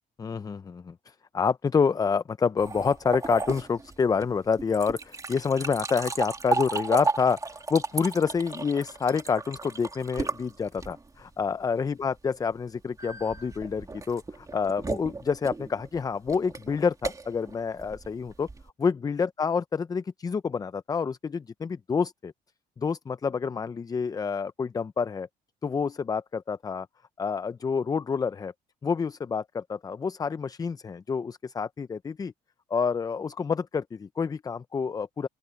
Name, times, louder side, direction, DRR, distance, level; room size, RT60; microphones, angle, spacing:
voice 1, 0.2-7.4 7.7-18.5 18.8-22.3 22.8-25.3 25.6-26.9 27.2-28.5 28.8-32.3 32.7-35.3, left 5 dB, 20° left, 0.4 m, -28 dB
sound 1, 2.6-11.2 13.0-18.7, right 3 dB, 20° right, 2.4 m, -34 dB
open air
cardioid pair, 110°, 17 cm